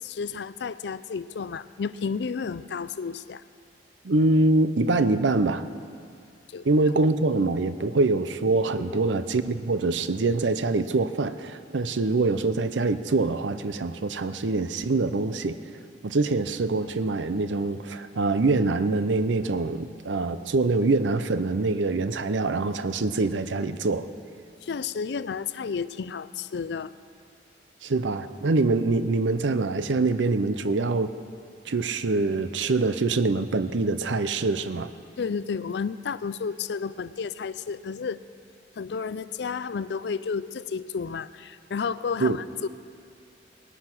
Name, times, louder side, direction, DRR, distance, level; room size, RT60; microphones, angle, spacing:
voice 1, 0.0-3.4 6.5-6.7 24.6-27.0 35.2-38.2 38.8-42.7, left 5 dB, 65° left, 16 dB, 0.4 m, -32 dB
voice 2, 4.0-5.7 6.6-15.6 16.0-24.1 27.8-31.1 31.7-34.9 42.2-42.4, right 3 dB, 85° right, 12 dB, 0.6 m, -24 dB
19.0 x 10.0 x 6.1 m, 2.3 s
head